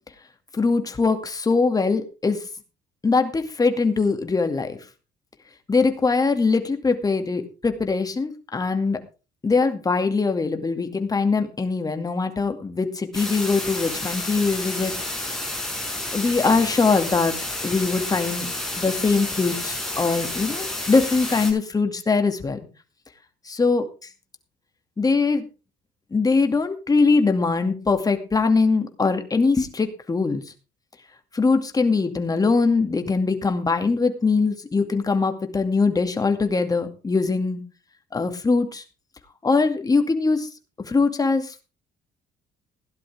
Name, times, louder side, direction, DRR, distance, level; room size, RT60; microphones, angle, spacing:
voice 1, 0.6-2.4 3.0-4.8 5.7-9.0 9.4-14.9 16.1-17.3 17.6-18.5 18.8-22.6 23.5-23.8 25.0-25.4 26.1-30.4 31.3-37.6 38.1-38.8 39.4-40.5 40.8-41.6, left 4 dB, 20° left, 6 dB, 2.3 m, -22 dB
sound 1, 13.1-21.5, left 1 dB, ahead, 6.8 m, -30 dB
17.0 x 11.0 x 3.5 m, 0.33 s
cardioid pair, 110°, 17 cm